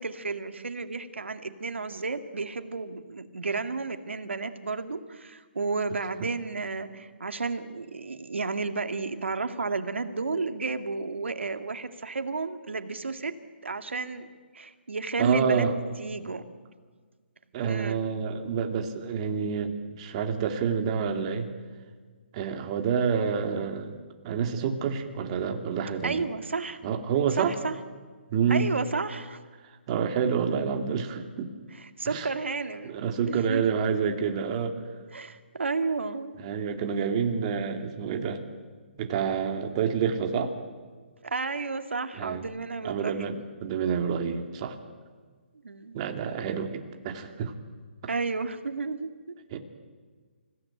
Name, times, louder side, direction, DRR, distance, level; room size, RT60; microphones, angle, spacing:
voice 1, 0.0-13.3 13.6-15.7 16.0-16.5 17.7-18.0 26.0-26.8 27.4-27.7 28.5-29.4 31.7-32.9 33.3-33.7 35.1-36.4 41.2-43.4 45.6-46.0 48.1-49.4, right 4 dB, 90° right, 8 dB, 2.2 m, -32 dB
voice 2, 15.2-15.7 17.5-21.5 22.3-24.0 24.2-26.2 26.8-27.6 28.3-28.7 29.9-31.5 32.0-32.3 32.8-34.8 36.4-38.4 39.0-40.5 42.1-42.5 42.8-44.8 45.9-47.5 49.5-49.6, right 6 dB, 30° right, 5 dB, 2.6 m, -28 dB
28.5 x 17.0 x 9.1 m, 1.5 s
hypercardioid pair, 155°, 6 cm